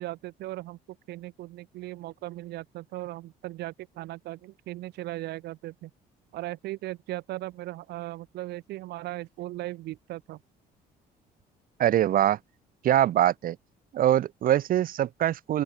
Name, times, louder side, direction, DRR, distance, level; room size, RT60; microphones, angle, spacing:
voice 1, 0.0-5.9 6.3-10.4, right 17 dB, 80° right, 1.8 m, -38 dB
voice 2, 11.8-12.4 12.8-13.6 13.9-15.6, right 12 dB, 55° right, 1.1 m, -23 dB
open air
cardioid pair, 110°, 17 cm